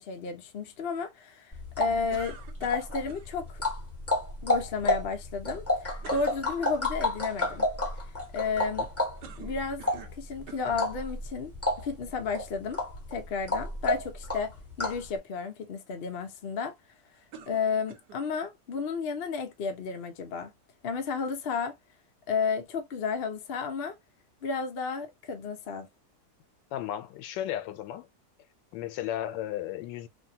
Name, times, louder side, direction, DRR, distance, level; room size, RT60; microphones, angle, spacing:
voice 1, 0.0-3.6 4.4-7.7 8.3-8.9 9.4-11.5 11.8-12.8 13.1-16.7 17.5-20.5 20.8-21.8 22.3-23.9 24.4-25.9, left 5 dB, 60° left, 0.6 m, -32 dB
sound 1, 1.5-15.1, left 1 dB, 10° left, 0.9 m, -31 dB
sound 2, 2.1-3.3 6.0-6.4 9.2-10.2 10.5-10.8 11.6-11.7 17.3-18.2, right 6 dB, 80° right, 1.3 m, -47 dB
voice 2, 26.7-28.1 28.7-30.1, left 12 dB, 85° left, 1.2 m, -34 dB
3.3 x 2.2 x 2.7 m
omnidirectional pair, 1.9 m